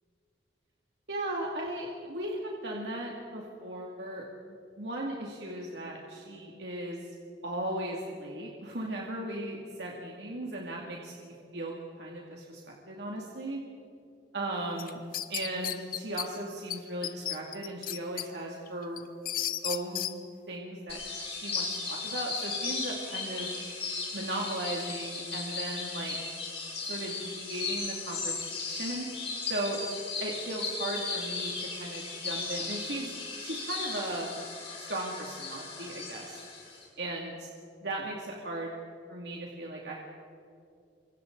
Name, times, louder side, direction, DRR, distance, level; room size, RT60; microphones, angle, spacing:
voice 1, 1.1-4.3 4.8-7.1 7.4-13.6 14.3-15.0 15.3-19.0 19.6-20.1 20.5-21.0 21.3-23.5 24.1-26.2 26.8-29.1 29.5-29.8 30.2-34.3 34.8-36.4 37.0-37.5 37.8-38.8 39.1-40.0, right 1 dB, 75° right, -2 dB, 2.4 m, -37 dB
sound 1, 14.8-16.3 16.7-16.8 17.0-18.3 18.7-20.1, left 11 dB, 55° left, 0.9 m, -33 dB
sound 2, 20.9-36.8, left 4 dB, 35° left, 6.7 m, -36 dB
28.5 x 25.0 x 4.0 m, 2.6 s
head